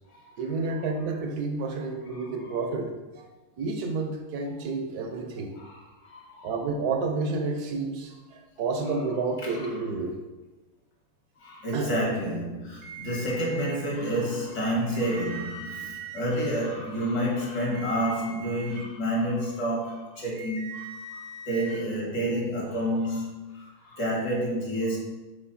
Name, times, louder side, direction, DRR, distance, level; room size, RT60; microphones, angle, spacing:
voice 1, 0.4-3.3 3.6-5.5 6.4-10.2 11.7-11.9, right 3 dB, 60° right, 4 dB, 1.0 m, -30 dB
voice 2, 5.5-6.5 9.4-9.7 11.4-25.0, equal, 55° left, -3 dB, 2.3 m, -29 dB
sound 1, 12.8-13.8 14.6-16.2 17.5-18.8 20.2-21.8, right 3 dB, 80° right, 1.6 m, -41 dB
7.0 x 4.5 x 4.1 m, 1.1 s
omnidirectional pair, 2.3 m